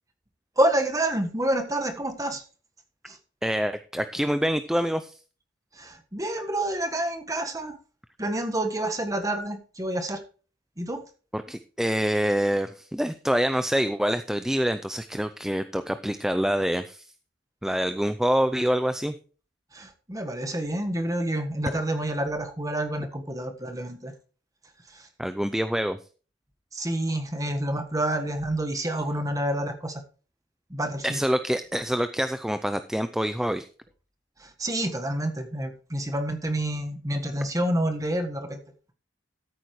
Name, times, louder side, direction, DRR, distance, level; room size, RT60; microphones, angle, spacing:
voice 1, 0.6-2.4 3.1-3.2 5.8-7.8 8.2-10.2 10.8-11.0 19.7-24.1 24.9-25.0 26.7-30.0 30.7-31.2 34.4-38.6, right 1 dB, 20° right, 6 dB, 1.5 m, -28 dB
voice 2, 3.4-5.1 11.3-17.1 17.6-19.1 25.2-26.0 31.0-33.7, equal, 5° right, 10 dB, 0.5 m, -26 dB
13.5 x 8.5 x 3.2 m, 0.37 s
head